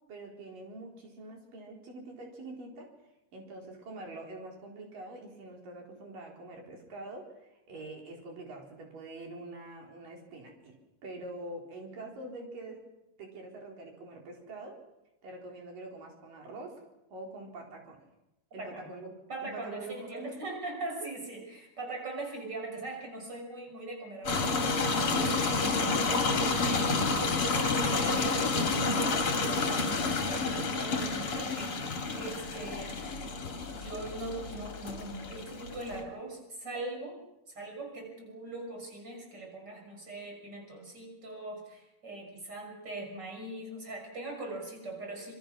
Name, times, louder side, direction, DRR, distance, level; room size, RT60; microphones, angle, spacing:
voice 1, 0.1-2.9 3.3-10.8 11.0-12.8 13.2-14.8 15.2-16.8 17.1-18.0 18.5-19.1 19.4-20.4, right 2 dB, 80° right, 0 dB, 5.6 m, -45 dB
voice 2, 18.6-18.9 19.3-26.7 27.4-28.4 28.7-33.0 33.7-37.2 37.5-45.3, right 2 dB, 30° right, 2 dB, 6.6 m, -41 dB
sound 1, 24.3-36.0, left 3 dB, 45° left, 3.2 m, -30 dB
26.5 x 22.5 x 6.2 m, 0.91 s
omnidirectional pair, 3.8 m